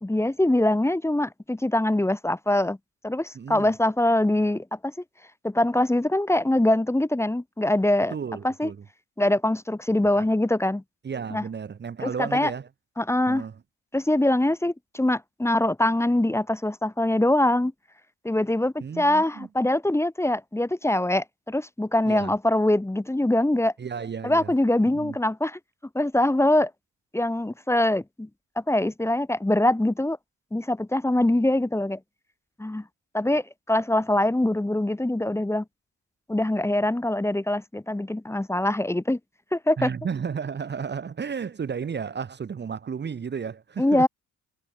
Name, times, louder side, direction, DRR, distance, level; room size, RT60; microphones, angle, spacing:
voice 1, 0.0-2.8 3.0-4.9 5.4-8.1 8.4-8.7 9.2-10.8 11.3-11.4 12.0-12.5 13.0-13.4 13.9-17.7 18.2-23.7 24.2-25.6 25.9-26.7 27.1-28.3 28.6-30.2 30.5-32.0 32.6-32.8 33.1-35.6 36.3-39.2 39.5-39.9 43.8-44.1, left 1 dB, 10° left, 1.5 m, -23 dB
voice 2, 3.3-3.7 8.1-8.8 10.2-10.3 11.0-12.7 13.3-13.6 18.8-19.5 22.1-22.3 23.8-24.5 24.9-25.1 39.8-44.1, right 6 dB, 35° right, 1.2 m, -33 dB
cardioid pair, 90°, 30 cm